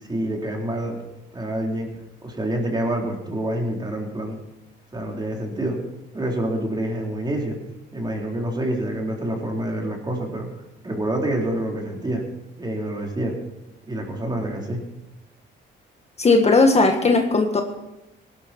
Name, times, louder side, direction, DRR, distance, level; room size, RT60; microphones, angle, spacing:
voice 1, 0.1-1.0 1.3-1.9 2.2-4.4 4.9-5.8 6.1-7.6 7.9-10.5 10.8-12.2 12.6-13.4 13.9-14.8, right 1 dB, 20° right, 0 dB, 4.1 m, -27 dB
voice 2, 16.2-17.6, left 3 dB, 35° left, 5 dB, 1.5 m, -17 dB
18.0 x 12.0 x 4.5 m, 0.92 s
cardioid pair, 90°, 20 cm